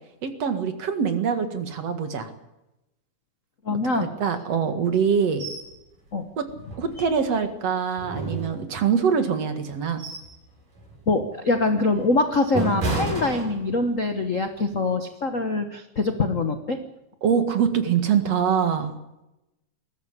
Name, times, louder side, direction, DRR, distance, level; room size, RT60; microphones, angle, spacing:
voice 1, 0.2-2.3 3.7-3.8 4.2-5.5 6.4-6.5 6.8-10.1 17.2-18.9, right 7 dB, 55° right, 8 dB, 2.8 m, -24 dB
voice 2, 3.6-4.1 6.1-6.2 11.1-16.8, left 2 dB, 60° left, 7 dB, 0.8 m, -24 dB
sound 1, 5.4-5.7 6.1-6.2 6.7-7.5 8.0-9.0 9.6-10.4 10.8-11.0 11.6-14.0 14.4-14.6, right 2 dB, 85° right, 7.9 m, -32 dB
20.5 x 14.5 x 9.8 m, 0.93 s
omnidirectional pair, 3.6 m